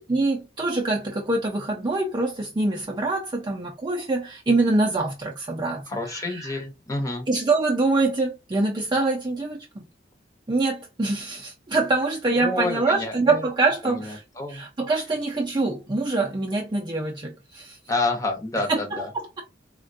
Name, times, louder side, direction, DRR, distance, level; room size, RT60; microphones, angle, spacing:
voice 1, 0.0-6.6 7.3-9.8 10.5-14.2 14.5-17.8 18.7-19.4, right 3 dB, 25° right, 0.4 m, -25 dB
voice 2, 5.9-7.3 12.4-13.5 13.8-14.7 17.9-19.1, left 2 dB, 15° left, 0.7 m, -29 dB
3.6 x 2.2 x 2.5 m
head